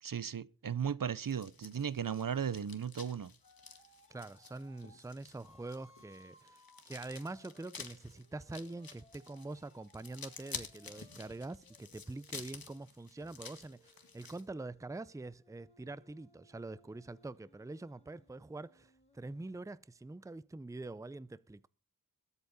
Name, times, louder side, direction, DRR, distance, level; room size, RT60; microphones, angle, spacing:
voice 1, 0.0-3.3, right 7 dB, 60° right, 0.8 m, -36 dB
sound 1, 1.2-14.4, left 5 dB, 65° left, 1.9 m, -50 dB
sound 2, 3.4-5.0 5.4-12.7 13.2-19.5, left 1 dB, 15° left, 7.8 m, -66 dB
voice 2, 4.1-21.7, right 2 dB, 10° right, 0.6 m, -45 dB
22.0 x 8.3 x 4.1 m
wide cardioid pair, 75°, 37 cm